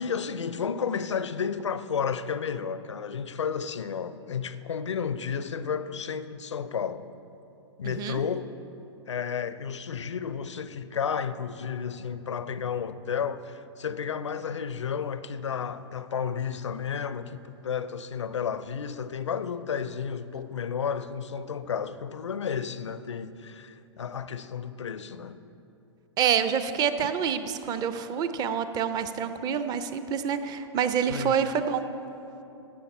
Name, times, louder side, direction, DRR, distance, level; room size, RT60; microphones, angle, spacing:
voice 1, 0.0-7.2 7.8-8.5 9.1-25.4 31.1-31.4, left 7 dB, 85° left, 0.5 m, -32 dB
voice 2, 7.8-8.2 26.2-31.8, right 7 dB, 25° right, 0.6 m, -27 dB
16.0 x 7.0 x 4.3 m
hypercardioid pair, 110°, 15 cm